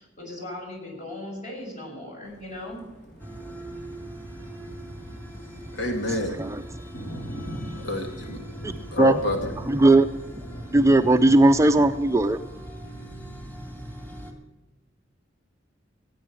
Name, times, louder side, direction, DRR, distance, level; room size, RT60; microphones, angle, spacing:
voice 1, 0.0-2.8, left 1 dB, 40° left, -1 dB, 6.4 m, -38 dB
Thunder, 2.2-11.9, equal, 60° left, 5.4 m, -42 dB
sound 1, 3.2-14.3, right 1 dB, 10° left, 2.8 m, -40 dB
voice 2, 5.7-6.4 7.8-8.4 8.9-9.5, left 1 dB, 85° left, 3 dB, 2.1 m, -28 dB
voice 3, 9.7-10.1 10.7-12.4, right 2 dB, 15° right, 9 dB, 0.5 m, -17 dB
16.5 x 9.1 x 7.6 m, 1.1 s
head